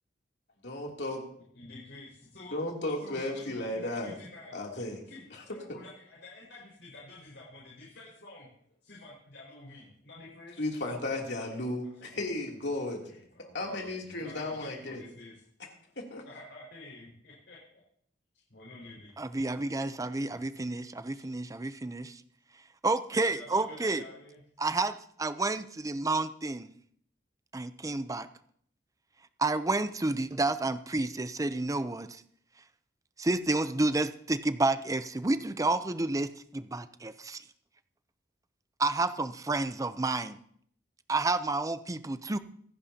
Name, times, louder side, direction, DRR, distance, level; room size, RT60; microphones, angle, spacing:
voice 1, 0.6-1.2 2.5-4.2 4.5-5.0 10.6-13.0 13.5-15.0 16.0-16.2, left 1 dB, 65° left, 2.9 m, -34 dB
voice 2, 1.5-2.5 3.0-4.6 5.1-8.5 8.8-10.6 13.1-15.4 16.2-17.6 18.5-19.1 20.3-20.4 21.1-21.3 23.3-24.4, left 2 dB, 80° left, 5.1 m, -49 dB
voice 3, 19.2-22.2 22.8-24.0 24.6-26.7 27.5-28.3 29.4-32.2 33.2-37.4 38.8-40.4 41.1-42.4, right 2 dB, 20° right, 0.5 m, -30 dB
24.5 x 11.0 x 2.8 m
head